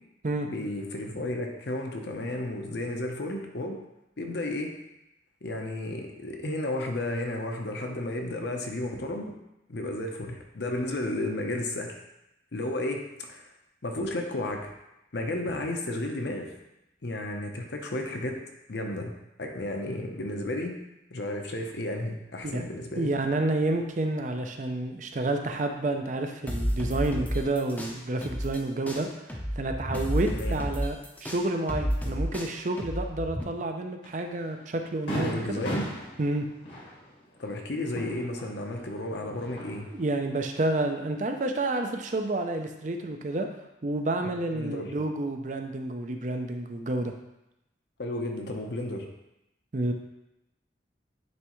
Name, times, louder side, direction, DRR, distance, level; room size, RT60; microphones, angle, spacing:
voice 1, 0.5-3.8 4.2-4.7 5.4-9.3 9.7-12.0 12.5-13.5 13.8-14.7 15.1-16.5 17.0-18.4 18.7-19.1 19.4-20.8 21.1-23.1 30.3-30.6 35.2-35.9 37.4-39.9 44.5-44.9 48.0-49.1, left 1 dB, 65° left, 2 dB, 0.8 m, -33 dB
voice 2, 23.0-35.6 36.2-36.5 39.9-43.5 43.8-47.1 49.7-49.9, right 2 dB, 40° right, 5 dB, 0.5 m, -29 dB
sound 1, 26.5-28.6 28.9-33.4, equal, 10° left, 0.6 m, -31 dB
Fireworks, 34.0-34.2 34.6-34.7 35.1-38.8 39.2-40.0, equal, 85° left, 1.8 m, -37 dB
9.4 x 3.4 x 3.1 m, 0.90 s
head